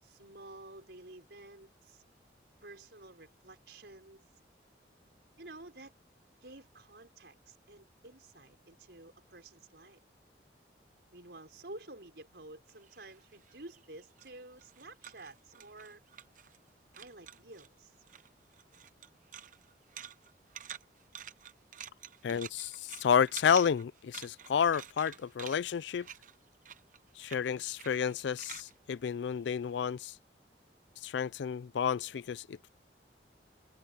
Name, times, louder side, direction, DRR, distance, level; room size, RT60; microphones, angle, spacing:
voice 1, 0.0-2.0 2.6-4.2 5.4-5.9 6.4-10.0 11.1-16.0 16.9-17.9, right 2 dB, 65° right, 4.8 m, -51 dB
sound 1, 12.7-16.7 16.9-17.7 18.0-29.9, right 9 dB, 45° right, 0.9 m, -50 dB
voice 2, 22.2-26.1 27.2-30.1 31.0-32.7, left 7 dB, 80° left, 0.4 m, -30 dB
head